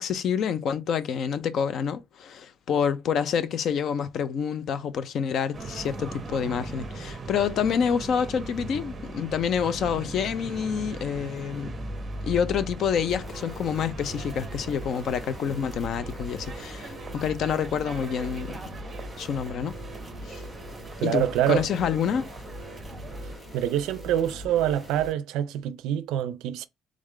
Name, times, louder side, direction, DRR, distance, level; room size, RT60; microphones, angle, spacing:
voice 1, 0.0-11.7 12.2-18.6 19.2-19.7 20.3-20.4 21.0-22.3, left 7 dB, 45° left, 0.4 m, -27 dB
sound 1, 5.5-23.4, right 2 dB, 20° right, 0.8 m, -39 dB
sound 2, 13.1-25.1, equal, 10° left, 1.6 m, -42 dB
voice 2, 21.0-21.7 23.5-26.7, right 11 dB, 80° right, 0.4 m, -25 dB
3.7 x 3.6 x 3.2 m
cardioid pair, 175°, 0 cm